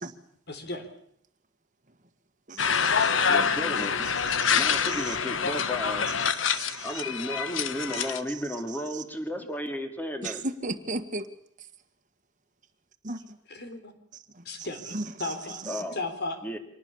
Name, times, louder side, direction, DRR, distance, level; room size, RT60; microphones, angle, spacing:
voice 1, 0.5-0.9 13.5-13.9 14.5-15.6 15.9-16.4, left 2 dB, 60° left, 3.8 m, -35 dB
voice 2, 2.5-3.1 4.4-4.6 5.1-5.2 6.5-6.9 7.9-8.0 8.9-9.0 10.2-11.3 13.0-13.2 14.9-15.0 15.7-15.8, right 2 dB, 40° right, 1.8 m, -35 dB
sound 1, 2.6-8.2, left 6 dB, 80° left, 1.3 m, -26 dB
voice 3, 3.3-4.0 4.5-6.2 6.8-10.5 15.7-16.0 16.4-16.6, equal, 10° left, 2.6 m, -34 dB
25.0 x 19.0 x 7.2 m
head